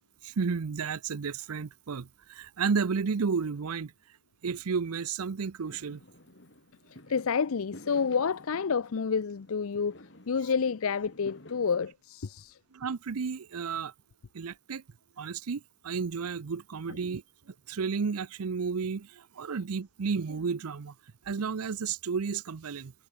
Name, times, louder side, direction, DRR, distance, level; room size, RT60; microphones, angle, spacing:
voice 1, 0.2-3.9 4.4-6.0 12.7-13.9 14.3-14.8 15.2-20.9 21.2-22.9, right 5 dB, 90° right, 0.6 m, -32 dB
Fireworks, 5.7-11.9, left 1 dB, 55° left, 2.2 m, -52 dB
voice 2, 7.1-9.9 10.3-12.6, left 6 dB, 75° left, 0.5 m, -29 dB
head